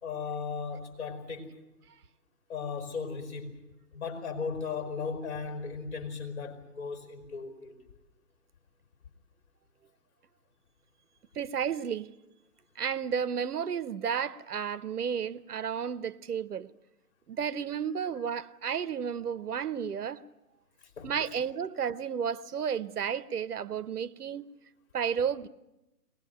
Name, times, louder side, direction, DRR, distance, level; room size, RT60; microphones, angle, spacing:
voice 1, 0.0-1.5 2.5-3.6 3.9-7.7 21.0-21.1, left 5 dB, 45° left, 4.8 m, -36 dB
voice 2, 11.3-12.1 12.8-16.7 17.3-20.2 21.0-24.5 24.9-25.5, right 7 dB, 70° right, 0.9 m, -32 dB
23.0 x 19.5 x 9.1 m
hypercardioid pair, 165°, 48 cm